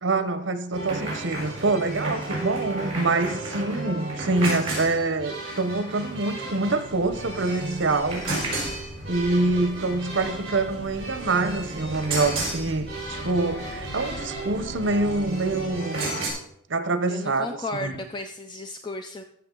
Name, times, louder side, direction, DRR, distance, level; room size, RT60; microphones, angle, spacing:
voice 1, 0.0-8.3 9.1-16.2 16.7-17.5 17.8-17.9, right 3 dB, 75° right, 0.8 m, -25 dB
sound 1, 0.7-16.3, right 2 dB, 30° right, 4.6 m, -33 dB
sound 2, 6.9-15.7, equal, 65° left, 1.5 m, -44 dB
voice 2, 17.1-19.2, left 2 dB, 25° left, 0.4 m, -34 dB
14.5 x 6.2 x 3.8 m
head